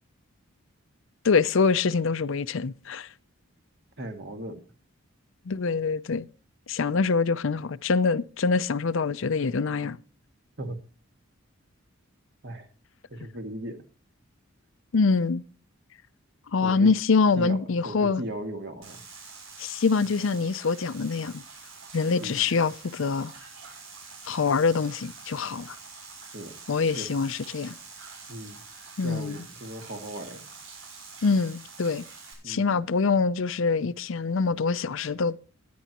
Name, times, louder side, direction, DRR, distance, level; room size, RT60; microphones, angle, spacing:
voice 1, 1.2-3.1 5.5-6.3 6.7-10.0 14.9-15.4 16.5-18.2 19.6-21.4 21.9-23.3 24.2-25.8 26.7-27.8 29.0-29.4 31.2-32.0 32.5-35.4, left 4 dB, 65° left, 0.5 m, -25 dB
voice 2, 4.0-4.6 10.6-10.8 12.4-12.7 13.1-13.8 16.6-16.9 17.4-17.6 17.8-19.0 22.2-22.5 26.3-26.5 27.0-27.1 28.3-28.6 29.0-30.4 32.4-32.8, right 1 dB, 50° right, 1.9 m, -37 dB
sound 1, 18.8-32.3, right 4 dB, 75° right, 6.0 m, -46 dB
21.0 x 9.4 x 2.9 m
head